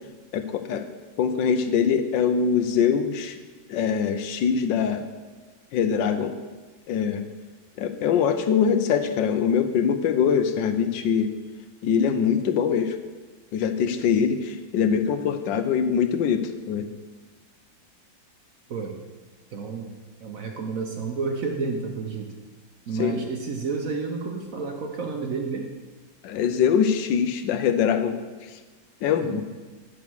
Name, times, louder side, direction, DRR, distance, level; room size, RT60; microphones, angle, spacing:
voice 1, 0.3-0.9 1.2-3.4 3.7-5.1 5.7-6.4 6.9-7.2 7.8-11.3 11.8-13.0 13.5-16.9 23.0-23.2 26.2-28.2 28.5-28.6 29.0-29.4, left 7 dB, 80° left, 9 dB, 1.3 m, -23 dB
voice 2, 19.5-19.9 20.2-22.3 22.9-25.7 29.2-29.4, right 4 dB, 60° right, 3 dB, 1.0 m, -30 dB
9.3 x 5.4 x 6.1 m, 1.3 s
omnidirectional pair, 2.1 m